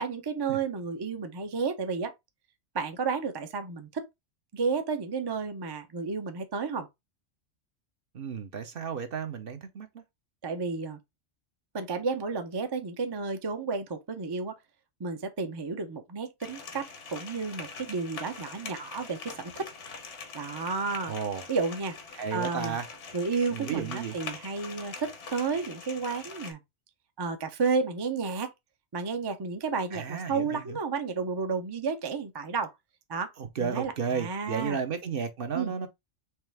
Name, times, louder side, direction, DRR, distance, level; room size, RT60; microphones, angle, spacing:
voice 1, 0.0-2.1 2.7-4.1 4.5-6.9 10.4-11.0 11.7-14.6 15.0-19.7 20.3-21.1 21.5-21.9 22.3-22.8 23.1-26.6 27.2-28.5 28.9-32.7 33.1-33.3 33.6-34.8 35.5-35.7, right 4 dB, 30° right, 0.4 m, -32 dB
voice 2, 8.1-10.0 21.1-21.4 22.2-22.9 23.5-24.2 29.9-30.8 33.4-35.9, right 6 dB, 55° right, 0.8 m, -33 dB
sound 1, 16.4-26.5, left 5 dB, 75° left, 1.3 m, -43 dB
4.6 x 3.2 x 3.4 m
omnidirectional pair, 1.2 m